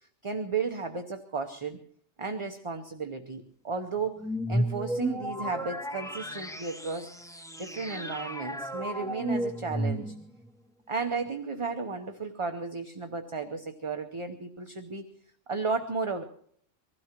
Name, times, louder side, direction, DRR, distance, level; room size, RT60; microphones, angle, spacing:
voice 1, 0.0-1.8 2.2-7.1 7.6-10.1 10.9-15.1 15.5-16.2, right 4 dB, 30° right, 5 dB, 0.8 m, -34 dB
sound 1, 4.2-10.5, right 1 dB, 5° left, 0.4 m, -33 dB
24.0 x 16.0 x 3.0 m, 0.62 s
omnidirectional pair, 1.3 m